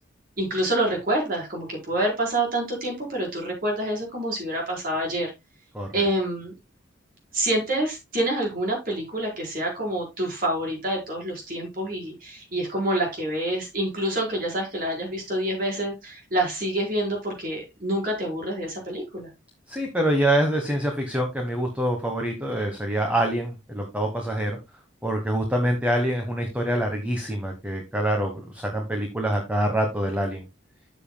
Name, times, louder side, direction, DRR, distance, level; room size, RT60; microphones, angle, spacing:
voice 1, 0.4-5.3 5.9-6.5 7.3-19.3, right 1 dB, 50° right, 0 dB, 4.6 m, -27 dB
voice 2, 19.7-24.6 25.0-30.4, right 1 dB, 5° right, 3 dB, 1.2 m, -25 dB
12.5 x 7.4 x 2.2 m, 0.22 s
head